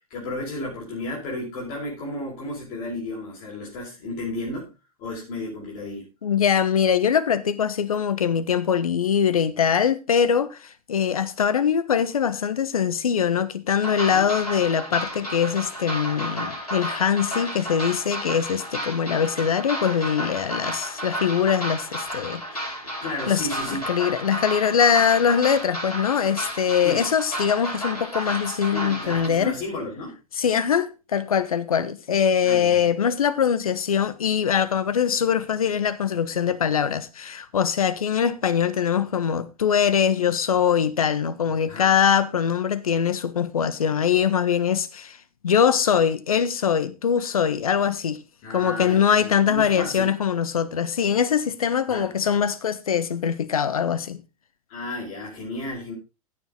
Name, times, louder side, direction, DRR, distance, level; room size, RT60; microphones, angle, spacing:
voice 1, 0.1-4.7 5.0-6.1 14.1-14.3 23.0-23.8 26.8-27.0 28.5-30.1 32.4-32.9 41.7-41.9 48.4-50.1 51.9-52.1 54.7-55.9, left 2 dB, 45° left, 5.6 m, -33 dB
voice 2, 6.2-22.7 23.3-29.6 30.4-45.2 45.4-48.2 48.5-54.2, left 7 dB, 70° left, 1.3 m, -22 dB
sound 1, 13.8-29.3, equal, 90° left, 5.2 m, -32 dB
16.0 x 7.2 x 3.9 m
figure-of-eight pair, 95°, 19 cm